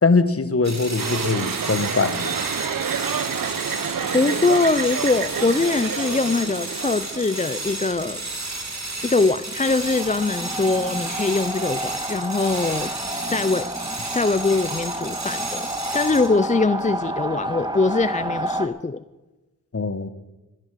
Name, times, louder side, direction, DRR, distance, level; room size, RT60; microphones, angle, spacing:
voice 1, 0.0-2.3 19.7-20.1, left 4 dB, 40° left, 13 dB, 1.1 m, -21 dB
sound 1, 0.6-16.4, right 2 dB, 50° right, 3.4 m, -32 dB
sound 2, 1.0-8.1, right 7 dB, 75° right, 0.8 m, -29 dB
voice 2, 4.1-8.3 9.0-12.9 13.3-13.7 14.1-15.7 15.9-19.0, left 3 dB, 20° left, 14 dB, 0.5 m, -22 dB
sound 3, 9.6-18.7, right 1 dB, 15° right, 1.5 m, -30 dB
17.0 x 11.0 x 6.6 m, 1.1 s
wide cardioid pair, 55°, 34 cm